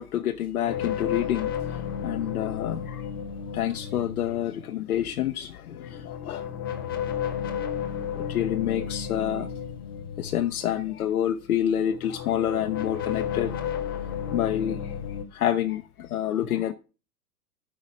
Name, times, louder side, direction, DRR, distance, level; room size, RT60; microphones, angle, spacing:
voice 1, 0.0-1.5 2.0-3.0 3.5-6.4 8.1-9.5 10.2-13.8 14.3-14.8 15.3-16.7, left 10 dB, 60° left, 0.8 m, -28 dB
sound 1, 0.7-4.8 5.7-11.4 11.8-15.2, left 8 dB, 15° left, 0.3 m, -33 dB
8.8 x 4.8 x 6.7 m
figure-of-eight pair, 105°, 49 cm